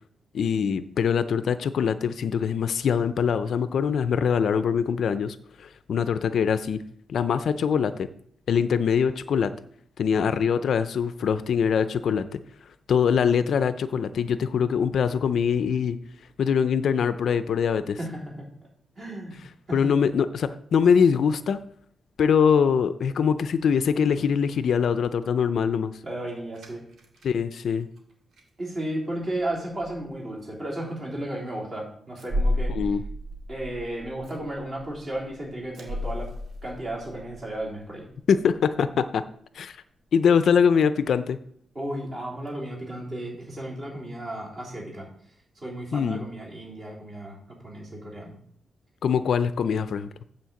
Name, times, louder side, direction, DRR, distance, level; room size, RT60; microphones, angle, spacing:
voice 1, 0.3-6.8 7.1-8.1 8.5-9.5 10.0-12.4 12.9-16.0 16.4-18.0 19.7-21.6 22.2-25.9 27.2-27.9 32.7-33.0 38.3-39.2 39.5-39.8 40.1-41.4 45.9-46.2 49.0-50.1, left 7 dB, 60° left, 12 dB, 0.5 m, -23 dB
voice 2, 18.0-18.4 19.0-19.4 19.7-19.9 26.0-26.8 28.6-32.7 33.5-36.3 36.6-38.0 41.7-45.1 45.5-47.4 47.6-48.4, right 1 dB, 30° right, -4 dB, 3.4 m, -34 dB
sound 1, 26.5-27.3 27.8-28.0 28.3-28.4 29.2-29.5 29.8-30.0 30.3-30.4 32.1-38.0 38.4-38.5 38.7-38.8 42.5-42.6, left 1 dB, 70° right, 2.1 m, -33 dB
9.1 x 4.4 x 7.0 m, 0.66 s
wide cardioid pair, 165°, 0 cm